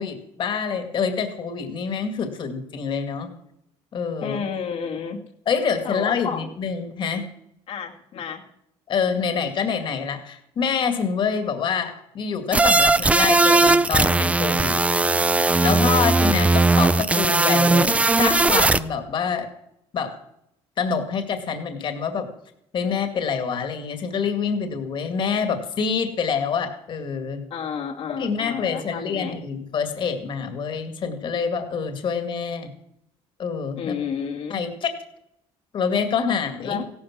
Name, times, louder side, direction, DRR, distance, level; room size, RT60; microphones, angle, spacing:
voice 1, 0.0-3.3 3.9-4.4 5.5-7.3 8.9-14.8 15.6-19.5 19.9-20.2 20.8-22.3 22.7-27.4 28.1-32.7 33.4-33.9 34.5-34.9 35.7-36.8, left 6 dB, 40° left, 7 dB, 2.1 m, -26 dB
voice 2, 4.2-5.2 5.8-6.5 7.7-8.5 15.7-16.3 27.5-29.4 33.7-34.6 36.6-36.9, left 7 dB, 60° left, 0 dB, 2.0 m, -31 dB
sound 1, 12.5-18.8, right 3 dB, 10° right, 0.5 m, -18 dB
16.0 x 12.0 x 6.0 m, 0.79 s
cardioid pair, 145°, 12 cm